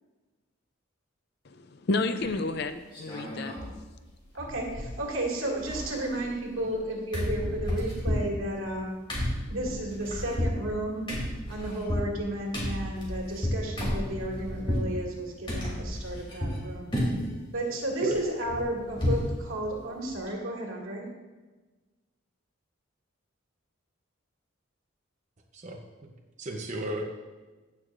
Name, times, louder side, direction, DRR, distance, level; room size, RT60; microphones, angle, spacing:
voice 1, 1.5-3.6, left 3 dB, 50° left, 10 dB, 0.5 m, -31 dB
sound 1, 2.2-2.6 2.9-3.7 4.0-4.1 4.4-5.2 5.5-6.8 7.1-14.9 15.5-16.6 16.9-17.4 17.7-19.3 19.7-19.8 20.1-20.3, left 1 dB, 25° left, 2.9 m, -32 dB
voice 2, 4.3-11.1 11.5-17.0 17.5-21.1, right 1 dB, 75° right, -2 dB, 2.3 m, -33 dB
voice 3, 26.4-27.1, right 1 dB, 35° right, 1 dB, 0.8 m, -32 dB
15.5 x 6.4 x 2.6 m, 1.2 s
head